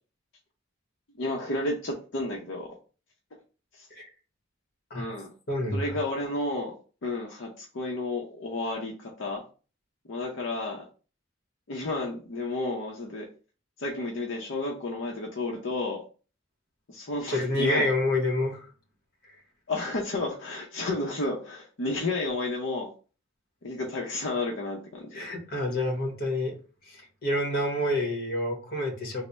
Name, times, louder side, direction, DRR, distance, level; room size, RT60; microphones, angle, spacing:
voice 1, 1.2-2.7 3.7-3.9 4.9-5.3 5.7-6.7 7.0-9.4 10.1-10.8 11.7-13.3 13.8-16.0 16.9-17.9 19.7-22.9 23.6-25.3, left 2 dB, 70° left, -1 dB, 0.6 m, -32 dB
voice 2, 5.5-6.0 17.3-18.7 25.1-26.5 26.9-29.2, left 1 dB, 45° left, 1 dB, 1.1 m, -28 dB
3.3 x 2.0 x 4.0 m, 0.36 s
head